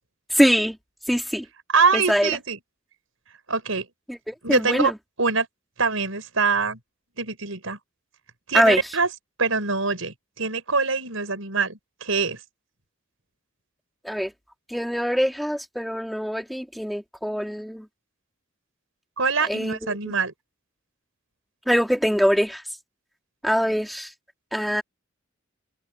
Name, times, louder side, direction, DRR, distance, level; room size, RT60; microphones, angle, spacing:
voice 1, 0.3-0.8 1.1-1.4 1.9-2.3 4.1-4.9 8.5-8.8 14.0-14.3 14.7-17.8 19.5-20.0 21.7-22.6 23.4-24.1 24.5-24.8, equal, ahead, 3.1 m, -23 dB
voice 2, 1.7-2.6 3.5-3.9 4.4-4.9 5.2-5.5 5.8-6.8 7.2-7.8 8.5-9.1 9.4-12.4 19.2-20.3, right 4 dB, 85° right, 5.2 m, -24 dB
head